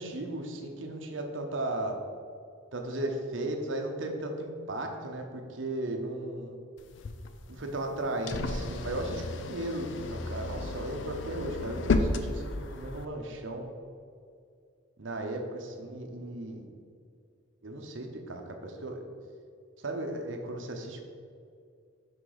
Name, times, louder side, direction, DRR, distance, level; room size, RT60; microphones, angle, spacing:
voice 1, 0.0-2.0 2.7-6.6 7.5-13.7 15.0-16.7 17.6-19.0 19.8-21.0, right 1 dB, 75° right, 3 dB, 0.8 m, -36 dB
sound 1, 6.8-13.1, left 3 dB, 70° left, 0.5 m, -33 dB
6.2 x 4.6 x 5.0 m, 2.3 s
head